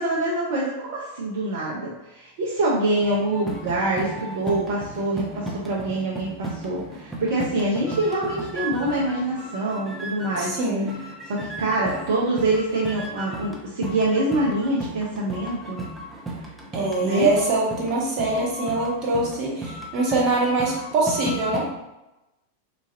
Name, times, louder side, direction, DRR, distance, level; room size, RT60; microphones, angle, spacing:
voice 1, 0.0-10.6 11.3-15.9 17.0-17.3, right 2 dB, 55° right, -6 dB, 0.6 m, -25 dB
sound 1, 3.0-10.6 10.9-21.6, right 1 dB, 10° right, 0.7 m, -35 dB
voice 2, 10.4-11.0 16.7-21.7, right 2 dB, 40° right, -3 dB, 1.1 m, -23 dB
3.9 x 2.5 x 2.6 m, 0.96 s
figure-of-eight pair, 90°, 0 cm